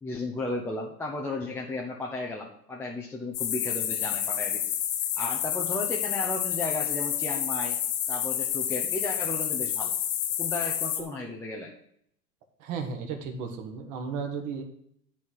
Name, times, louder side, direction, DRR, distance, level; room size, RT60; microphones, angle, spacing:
voice 1, 0.0-4.6 5.2-7.8 8.1-9.9 10.4-11.7, left 2 dB, 5° left, -2 dB, 0.6 m, -34 dB
sound 1, 3.3-11.0, left 10 dB, 55° left, 1.6 m, -29 dB
voice 2, 12.6-14.6, right 5 dB, 40° right, 4 dB, 1.6 m, -34 dB
11.0 x 4.2 x 6.3 m, 0.71 s
hypercardioid pair, 120°, 49 cm